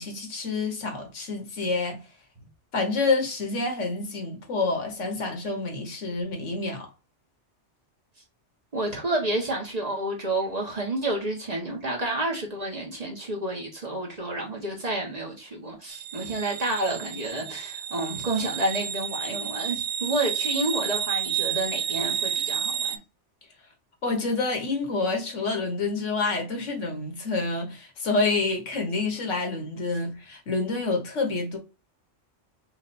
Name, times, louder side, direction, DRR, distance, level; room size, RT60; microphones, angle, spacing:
voice 1, 0.0-2.0 2.7-6.9 24.0-31.6, left 3 dB, 80° left, 1.6 m, -28 dB
voice 2, 8.7-23.0, right 2 dB, 35° right, 1.3 m, -30 dB
sound 1, 15.9-23.0, right 9 dB, 60° right, 0.6 m, -30 dB
4.6 x 2.5 x 4.2 m
omnidirectional pair, 1.2 m